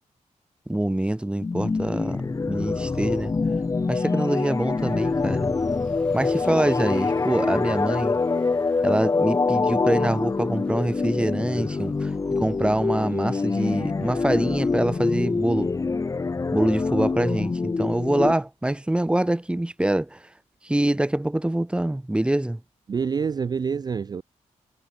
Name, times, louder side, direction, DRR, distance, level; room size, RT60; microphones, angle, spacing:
voice 1, 0.7-3.3 3.9-5.6 6.1-8.2 8.8-15.7 16.5-20.2 20.6-22.6, right 1 dB, 10° right, 0.9 m, -25 dB
sound 1, 1.4-18.3, left 4 dB, 25° left, 0.6 m, -25 dB
Ocean, 4.2-13.1, left 1 dB, 10° left, 7.8 m, -54 dB
voice 2, 22.9-24.2, right 6 dB, 35° right, 0.4 m, -26 dB
cardioid pair, 95°, 13 cm